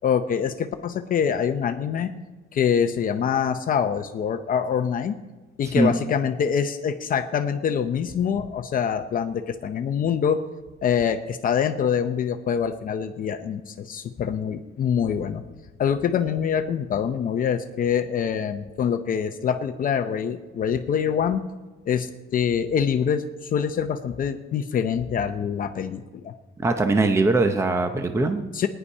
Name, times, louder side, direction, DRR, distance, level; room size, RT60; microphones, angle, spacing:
voice 1, 0.0-2.1 2.5-5.2 5.6-10.4 10.8-15.4 15.8-21.4 21.9-26.3 28.5-28.7, left 7 dB, 40° left, 8 dB, 0.6 m, -25 dB
voice 2, 26.6-28.5, right 2 dB, 15° right, 7 dB, 0.7 m, -21 dB
19.5 x 10.0 x 5.5 m, 1.2 s
cardioid pair, 175°, 21 cm